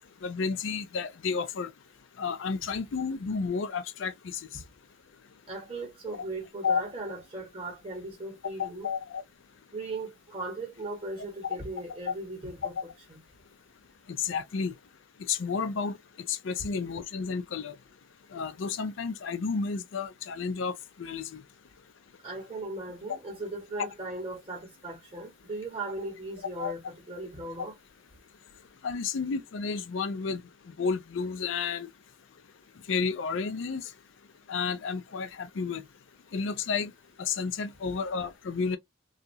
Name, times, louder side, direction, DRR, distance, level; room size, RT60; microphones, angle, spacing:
voice 1, 0.2-1.7 2.2-4.1 6.6-6.8 8.6-9.2 14.2-14.7 15.3-16.0 16.3-17.7 18.3-20.7 21.0-21.4 26.6-26.7 28.8-30.4 30.8-31.9 32.9-33.8 34.5-35.8 36.3-36.9 37.2-38.8, left 5 dB, 80° left, 0.4 m, -31 dB
voice 2, 5.5-8.9 9.7-12.7 13.1-13.2 22.2-26.8 27.1-27.7, right 2 dB, 30° right, 1.4 m, -38 dB
2.8 x 2.3 x 2.7 m
head